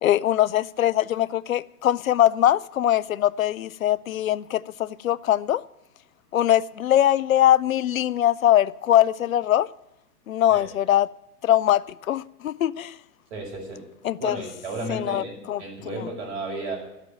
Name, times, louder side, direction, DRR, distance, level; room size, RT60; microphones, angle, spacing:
voice 1, 0.0-5.6 6.3-9.7 10.3-11.1 11.4-13.0 14.0-14.4 14.9-16.1, left 12 dB, 65° left, 0.5 m, -22 dB
voice 2, 13.3-13.8 14.2-16.8, right 2 dB, 45° right, 5.4 m, -33 dB
12.0 x 8.3 x 9.6 m
figure-of-eight pair, 120°, 46 cm